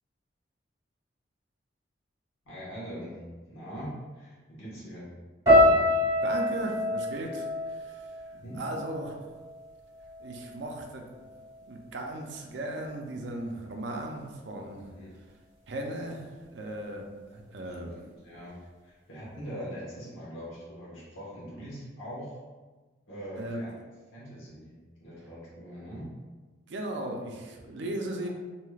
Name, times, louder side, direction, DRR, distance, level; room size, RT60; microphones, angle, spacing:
voice 1, 2.4-3.2 3.5-5.1 8.3-8.6 14.8-15.1 17.6-18.5 18.8-22.4 23.1-23.7 24.1-24.7 25.0-26.1 28.2-28.3, equal, 85° left, -7 dB, 1.1 m, -42 dB
sound 1, 5.5-9.7 9.9-10.7 11.3-11.5, left 1 dB, 20° right, 1.5 m, -26 dB
voice 2, 6.2-8.1 8.6-9.2 10.2-11.3 11.7-14.9 15.7-18.0 23.4-23.6 26.7-28.3, right 1 dB, 70° right, 2 dB, 0.5 m, -37 dB
3.2 x 2.7 x 2.3 m, 1.3 s
head